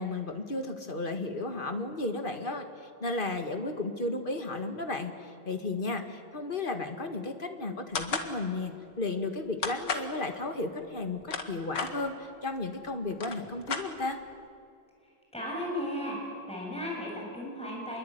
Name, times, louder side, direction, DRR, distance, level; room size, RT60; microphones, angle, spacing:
voice 1, 0.0-2.7 3.0-14.2, left 2 dB, 25° left, 6 dB, 2.0 m, -34 dB
sound 1, 7.9-8.3 9.6-10.1 11.0-11.9 12.7-12.8 13.1-14.3, left 5 dB, 65° left, 2.5 m, -33 dB
voice 2, 15.3-16.2 16.5-18.0, equal, 5° left, -3 dB, 7.3 m, -35 dB
26.5 x 22.5 x 9.5 m, 2.4 s
omnidirectional pair, 2.1 m